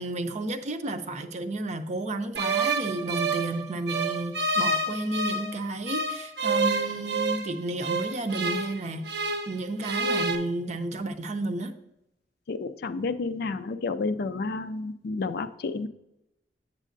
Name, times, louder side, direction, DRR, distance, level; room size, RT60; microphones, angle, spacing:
voice 1, 0.0-11.7, right 2 dB, 40° right, 8 dB, 0.6 m, -32 dB
sound 1, 2.4-5.5 5.9-9.5 9.8-10.4, right 3 dB, 70° right, 0.7 m, -28 dB
voice 2, 12.5-15.9, left 3 dB, 60° left, 11 dB, 0.4 m, -30 dB
8.2 x 7.4 x 2.6 m, 0.84 s
head